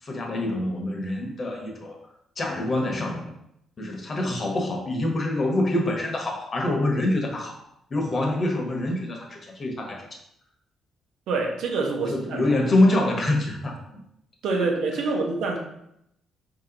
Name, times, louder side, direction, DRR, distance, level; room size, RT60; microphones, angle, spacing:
voice 1, 0.0-2.0 2.4-3.3 3.8-7.6 7.9-10.1 12.1-13.8, left 1 dB, 35° left, 1 dB, 1.1 m, -25 dB
voice 2, 11.3-12.4 14.4-15.6, right 3 dB, 80° right, 1 dB, 0.9 m, -26 dB
4.5 x 2.9 x 3.9 m, 0.77 s
cardioid pair, 90°, 0 cm